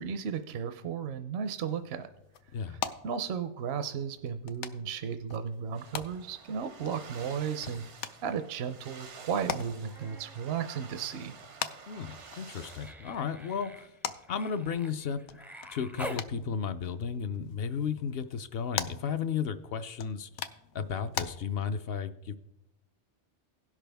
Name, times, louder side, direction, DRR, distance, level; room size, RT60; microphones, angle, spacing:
voice 1, 0.0-2.1 2.7-11.4, right 7 dB, 70° right, 9 dB, 0.8 m, -35 dB
sound 1, 1.4-21.3, left 9 dB, 85° left, 0.9 m, -43 dB
sound 2, 5.7-12.9, right 5 dB, 90° right, 1.3 m, -50 dB
Human voice, 9.6-10.4 10.7-16.3 17.9-18.0, equal, ahead, 0.4 m, -47 dB
voice 2, 11.9-13.9 14.3-15.4 15.7-20.3 20.7-22.3, left 6 dB, 65° left, 10 dB, 0.8 m, -34 dB
17.0 x 6.1 x 3.4 m, 0.88 s
omnidirectional pair, 1.2 m